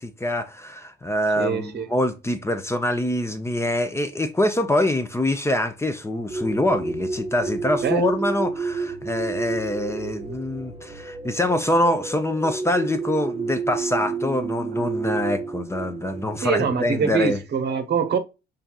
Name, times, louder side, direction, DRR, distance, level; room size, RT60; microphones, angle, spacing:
voice 1, 0.0-17.4, left 1 dB, 15° left, 0.6 m, -25 dB
voice 2, 1.4-1.9 7.8-8.1 16.4-18.2, right 6 dB, 60° right, 0.9 m, -24 dB
sound 1, 6.3-17.3, right 4 dB, 25° right, 0.7 m, -31 dB
5.7 x 2.6 x 2.3 m
cardioid pair, 90°, 20 cm